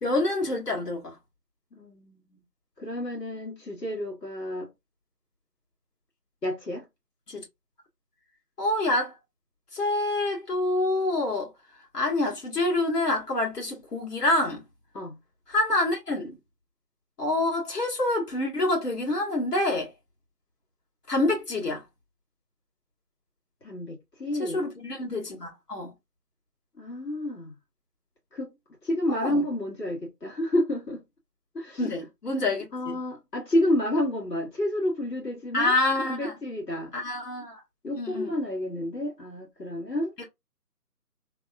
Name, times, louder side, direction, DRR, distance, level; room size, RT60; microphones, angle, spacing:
voice 1, 0.0-1.2 7.3-7.4 8.6-9.1 9.7-11.5 11.9-14.6 15.5-16.4 17.2-19.9 21.1-21.8 24.4-25.9 29.1-29.4 31.8-33.0 35.5-36.3 36.9-37.6 37.9-38.3 40.2-40.3, left 2 dB, 70° left, 1.8 m, -27 dB
voice 2, 1.7-2.4 2.8-4.7 6.4-6.9 14.9-15.2 23.6-24.6 26.8-27.5 28.3-28.5 28.8-31.0 31.5-31.8 32.7-35.8 36.0-36.9 37.8-40.1, left 1 dB, 85° left, 1.8 m, -30 dB
3.4 x 2.4 x 2.5 m
figure-of-eight pair, 160°, 48 cm